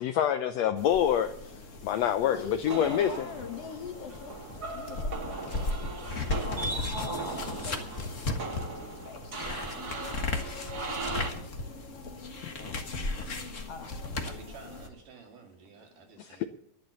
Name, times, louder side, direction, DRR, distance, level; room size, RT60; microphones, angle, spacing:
voice 1, 0.0-1.3 1.8-3.3 16.2-16.5, left 10 dB, 80° left, 1.5 m, -26 dB
sound 1, 0.8-14.9, left 3 dB, 40° left, 1.2 m, -36 dB
voice 2, 2.3-5.8 6.4-8.7 9.1-9.4 11.5-11.6 12.7-12.9 13.6-14.1, left 6 dB, 65° left, 1.7 m, -42 dB
sound 2, 2.7-11.3, right 3 dB, 35° right, 1.8 m, -38 dB
voice 3, 14.3-16.5, right 5 dB, 75° right, 4.0 m, -51 dB
12.0 x 11.5 x 6.9 m
omnidirectional pair, 3.7 m